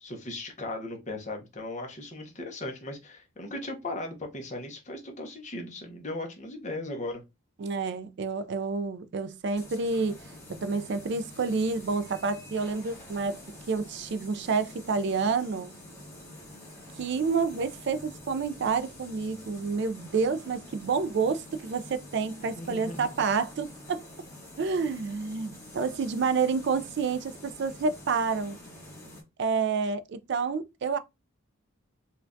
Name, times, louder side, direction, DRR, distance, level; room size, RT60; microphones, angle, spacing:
voice 1, 0.0-7.2 22.5-23.1, left 2 dB, 35° left, 0.8 m, -37 dB
voice 2, 7.6-10.2 10.5-13.4 13.7-15.8 17.0-24.1 24.6-28.6 29.4-31.0, right 4 dB, 50° right, 0.3 m, -29 dB
sound 1, 9.5-29.2, left 1 dB, 15° left, 1.1 m, -47 dB
4.4 x 2.3 x 2.5 m
head